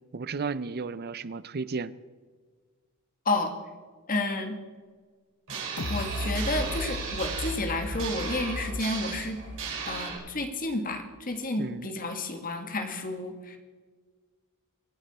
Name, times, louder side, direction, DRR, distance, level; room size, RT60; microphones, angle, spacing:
voice 1, 0.1-1.9 11.6-11.9, right 4 dB, 45° right, 16 dB, 0.5 m, -33 dB
voice 2, 4.1-4.6 5.9-9.4 9.9-13.6, left 2 dB, 40° left, 6 dB, 1.8 m, -31 dB
sound 1, 5.5-10.2, right 5 dB, 60° right, 5.1 m, -36 dB
sound 2, 5.8-10.7 11.1-11.2, left 1 dB, 75° left, 0.8 m, -36 dB
25.5 x 8.8 x 4.3 m, 1.5 s
head